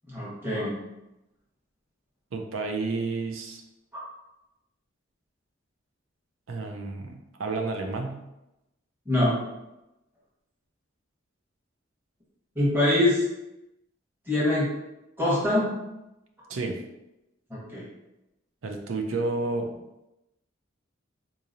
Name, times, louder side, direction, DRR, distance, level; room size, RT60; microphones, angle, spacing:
voice 1, 0.1-0.7 9.1-9.4 12.5-13.2 14.3-14.7 15.2-15.7 17.5-17.8, left 1 dB, 10° right, -8 dB, 1.2 m, -24 dB
voice 2, 2.3-3.6 6.5-8.2 16.5-16.8 18.6-19.8, right 3 dB, 80° right, 3 dB, 0.6 m, -31 dB
3.9 x 3.0 x 2.6 m, 0.93 s
head